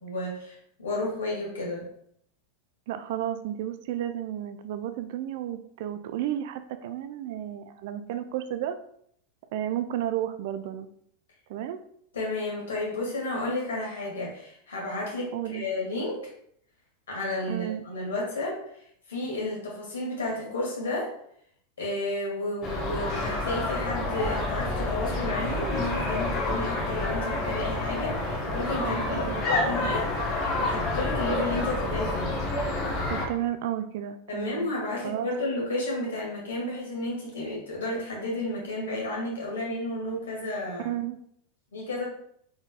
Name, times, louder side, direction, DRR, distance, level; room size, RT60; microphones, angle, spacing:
voice 1, 0.0-1.8 12.1-16.2 17.1-18.6 19.1-21.1 21.8-30.0 30.6-32.4 34.3-40.9 41.7-42.0, left 2 dB, 70° left, -3 dB, 1.6 m, -32 dB
voice 2, 2.9-8.8 9.5-10.9 11.5-11.8 15.3-15.7 17.5-17.9 28.8-29.7 33.1-34.7 35.0-35.3 40.8-41.2, right 11 dB, 55° right, 11 dB, 0.3 m, -32 dB
sound 1, 22.6-33.3, left 2 dB, 40° left, 1.0 m, -28 dB
4.0 x 4.0 x 2.3 m, 0.68 s
figure-of-eight pair, 85°, 0 cm